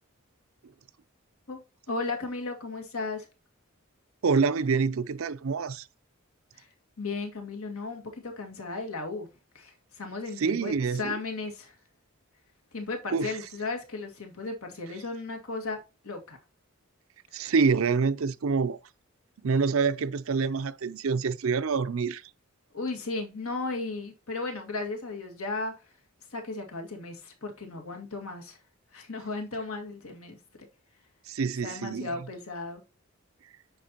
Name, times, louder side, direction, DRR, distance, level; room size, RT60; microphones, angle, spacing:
voice 1, 1.9-3.3 6.5-6.7 7.0-9.3 9.5-11.8 12.7-15.8 16.0-16.4 22.7-25.7 26.3-28.6 28.9-30.4 31.6-32.8, left 3 dB, 80° left, 2.0 m, -35 dB
voice 2, 4.2-5.9 10.4-11.2 13.1-13.3 17.3-18.8 19.4-22.2 31.3-32.1, right 5 dB, 70° right, 0.5 m, -26 dB
10.0 x 4.3 x 2.9 m
head